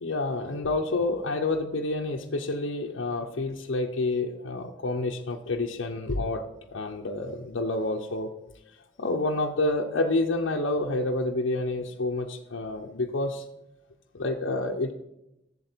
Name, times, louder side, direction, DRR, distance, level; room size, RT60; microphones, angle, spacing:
voice 1, 0.0-6.4 6.7-8.3 9.0-13.4 14.1-14.9, left 2 dB, 75° left, 1 dB, 0.7 m, -28 dB
7.8 x 7.5 x 4.4 m, 0.84 s
head